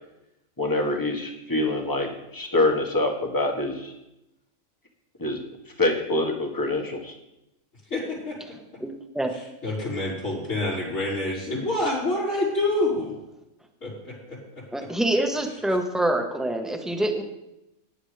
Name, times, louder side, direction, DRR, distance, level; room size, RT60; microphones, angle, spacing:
voice 1, 0.6-3.9 5.2-5.4 5.8-7.1, left 2 dB, 15° left, 2 dB, 1.5 m, -25 dB
voice 2, 7.9-8.4 9.6-13.2 13.8-14.6, left 2 dB, 80° left, -9 dB, 5.5 m, -27 dB
voice 3, 8.8-9.3 14.7-17.2, right 1 dB, ahead, 3 dB, 1.2 m, -26 dB
16.5 x 10.0 x 3.4 m, 0.89 s
omnidirectional pair, 1.3 m